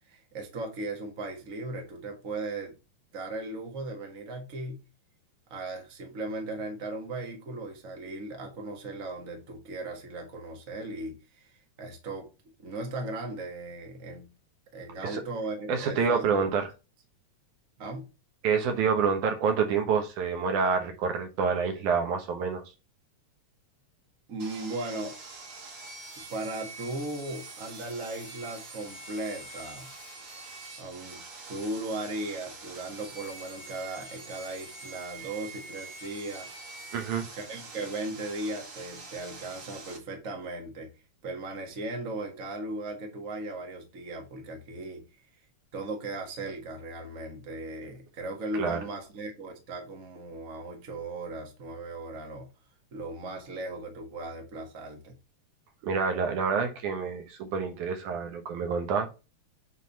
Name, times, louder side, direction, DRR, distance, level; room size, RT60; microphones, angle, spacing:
voice 1, 0.1-2.7 3.1-4.8 5.5-11.5 11.8-12.3 12.6-14.3 14.7-16.5 17.8-18.1 24.3-25.2 26.3-29.9 30.8-36.5 37.3-40.9 41.2-45.1 45.7-52.5 52.9-55.2, right 2 dB, 30° right, 1.8 m, -37 dB
voice 2, 15.7-16.7 18.4-22.6 36.9-37.2 48.6-48.8 55.8-59.1, right 5 dB, 80° right, 2.7 m, -27 dB
Sawing, 24.4-40.0, right 3 dB, 50° right, 2.7 m, -45 dB
8.2 x 3.9 x 4.1 m
omnidirectional pair, 3.4 m